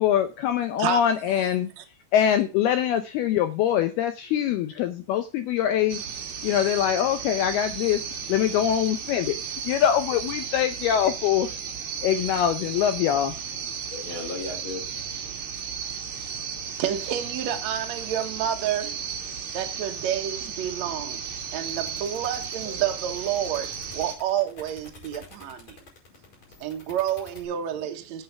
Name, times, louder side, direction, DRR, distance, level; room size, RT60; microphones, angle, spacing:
voice 1, 0.0-1.7 2.1-6.0 6.4-8.0 8.3-9.4 9.7-11.5 12.0-13.4, left 10 dB, 80° left, 2.3 m, -23 dB
sound 1, 5.9-24.2, right 7 dB, 50° right, 2.5 m, -34 dB
voice 2, 13.7-14.8 22.6-22.9 26.1-26.9, left 3 dB, 50° left, 1.5 m, -38 dB
voice 3, 16.8-19.0 19.5-21.2 21.5-25.8 26.6-28.2, right 10 dB, 80° right, 1.5 m, -29 dB
sound 2, 21.7-27.5, left 3 dB, 35° left, 6.1 m, -48 dB
8.8 x 8.0 x 5.8 m
omnidirectional pair, 5.4 m